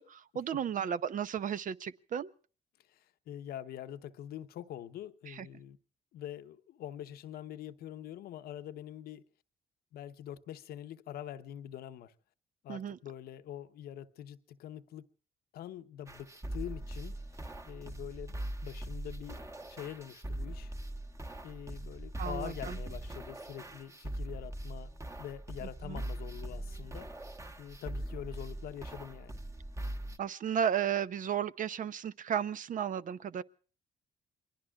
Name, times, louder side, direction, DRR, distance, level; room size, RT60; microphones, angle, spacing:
voice 1, 0.0-2.3 5.3-5.5 12.7-13.0 22.2-22.8 25.6-26.0 30.2-33.4, right 8 dB, 55° right, 0.7 m, -34 dB
voice 2, 2.9-5.8 6.1-9.2 9.9-12.1 12.6-15.1 15.5-17.2 17.7-20.7 21.4-24.9 25.2-27.1 27.6-29.4, left 11 dB, 80° left, 0.9 m, -45 dB
sound 1, 16.1-30.2, right 1 dB, 20° right, 1.2 m, -41 dB
28.0 x 21.5 x 2.4 m
cardioid pair, 75°, 16 cm